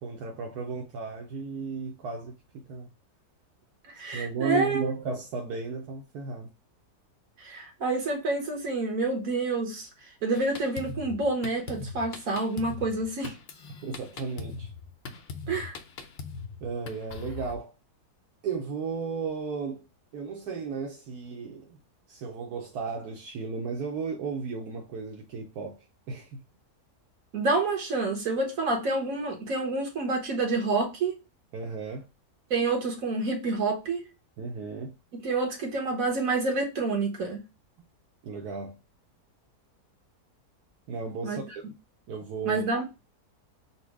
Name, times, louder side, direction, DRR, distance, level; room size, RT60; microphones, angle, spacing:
voice 1, 0.0-2.9 4.1-6.5 13.8-14.7 16.6-17.7 18.4-19.9 20.1-21.8 22.1-26.4 31.5-32.1 34.4-34.9 38.2-38.8 40.9-41.4 42.1-42.6, right 5 dB, 75° right, 1.2 m, -34 dB
voice 2, 3.9-4.9 7.4-9.9 10.2-13.3 15.5-15.8 27.3-31.1 32.5-34.0 35.2-37.4 41.2-41.4 42.4-42.8, right 3 dB, 60° right, 1.5 m, -28 dB
Drum kit, 10.3-17.6, left 5 dB, 75° left, 0.5 m, -41 dB
4.2 x 2.1 x 4.6 m
omnidirectional pair, 1.7 m